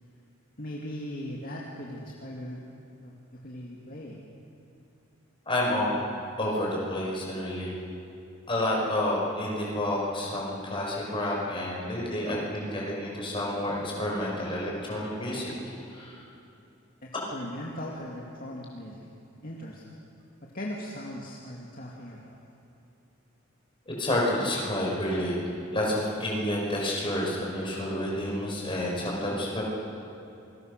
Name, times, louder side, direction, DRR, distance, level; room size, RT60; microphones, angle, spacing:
voice 1, 0.6-2.6 3.0-4.2 17.0-19.1 19.4-20.0 20.5-22.4, equal, 45° left, -3 dB, 2.3 m, -39 dB
voice 2, 5.5-6.0 6.4-7.7 8.5-15.5 15.9-16.2 23.9-25.4 25.7-29.6, left 1 dB, 25° left, -3 dB, 5.5 m, -29 dB
sound 1, 12.2-13.7 14.8-16.4 17.7-17.9, left 1 dB, 80° left, 6.7 m, -49 dB
27.5 x 21.0 x 6.7 m, 2.7 s
head